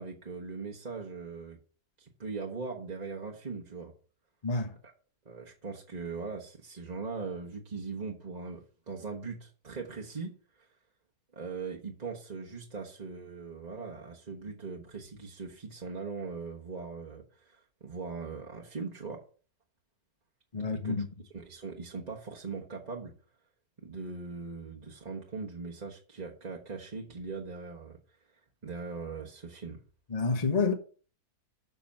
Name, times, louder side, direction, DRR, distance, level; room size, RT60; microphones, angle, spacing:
voice 1, 0.0-1.6 2.0-3.9 4.8-4.9 5.2-10.7 11.3-19.2 20.7-21.0 21.3-23.1 23.8-28.0 28.6-29.8, right 4 dB, 30° right, 1.2 m, -40 dB
voice 2, 4.4-4.8 20.5-21.1 30.1-30.7, left 4 dB, 25° left, 1.1 m, -28 dB
7.0 x 6.1 x 7.2 m
omnidirectional pair, 1.7 m